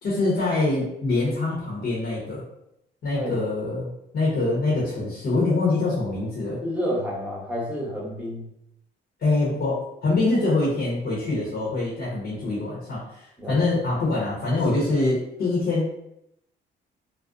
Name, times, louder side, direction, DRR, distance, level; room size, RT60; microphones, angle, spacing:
voice 1, 0.0-2.4 3.0-6.6 9.2-16.0, left 2 dB, 65° left, -7 dB, 0.9 m, -24 dB
voice 2, 6.6-8.5 13.4-13.9, equal, 5° right, -4 dB, 0.9 m, -30 dB
2.4 x 2.1 x 2.5 m, 0.79 s
cardioid pair, 90°, 20 cm